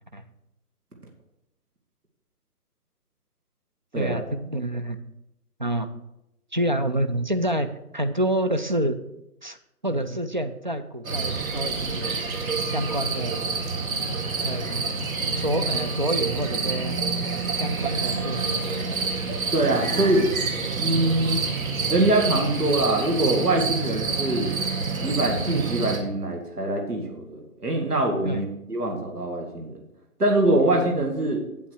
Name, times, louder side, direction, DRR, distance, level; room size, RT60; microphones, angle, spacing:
voice 1, 3.9-5.0 5.6-5.9 6.5-9.0 9.4-9.6 9.8-12.2 12.7-13.4 14.4-14.9 15.3-17.0 17.6-18.8 23.9-24.0 28.2-28.4, right 1 dB, 35° right, 9 dB, 0.4 m, -28 dB
sound 1, 11.0-26.0, right 4 dB, 65° right, 1.9 m, -28 dB
voice 2, 19.5-20.3 20.8-21.4 21.9-24.5 25.0-29.8 30.2-31.4, right 1 dB, 85° right, 1 dB, 2.2 m, -23 dB
8.5 x 8.4 x 4.7 m, 0.87 s
figure-of-eight pair, 140°, 45 cm